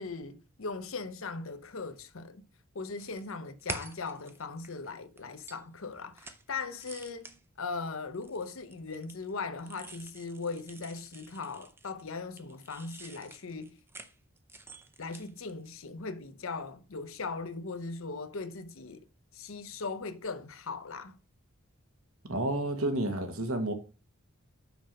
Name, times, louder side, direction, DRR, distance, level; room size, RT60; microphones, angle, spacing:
voice 1, 0.0-2.4 2.7-13.8 15.0-19.0 19.3-21.2, left 4 dB, 65° left, 0.8 m, -39 dB
sound 1, 3.0-4.9 5.2-5.7 5.9-6.4 6.7-7.4 8.1-12.1 12.4-15.7, right 3 dB, 10° right, 0.5 m, -47 dB
voice 2, 22.3-23.7, right 1 dB, 75° right, 1.4 m, -30 dB
6.1 x 5.1 x 5.3 m
head